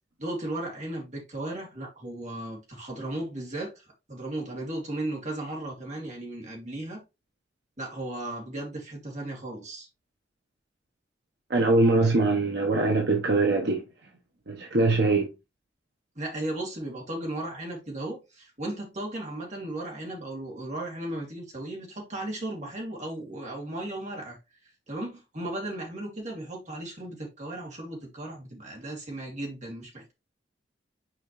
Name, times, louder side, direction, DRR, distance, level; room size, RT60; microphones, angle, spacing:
voice 1, 0.2-7.0 7.8-9.9 16.2-24.4 24.9-30.1, right 1 dB, 40° right, 2.7 m, -36 dB
voice 2, 11.5-13.8 14.5-15.3, right 2 dB, 65° right, 1.0 m, -22 dB
6.0 x 5.0 x 3.1 m
head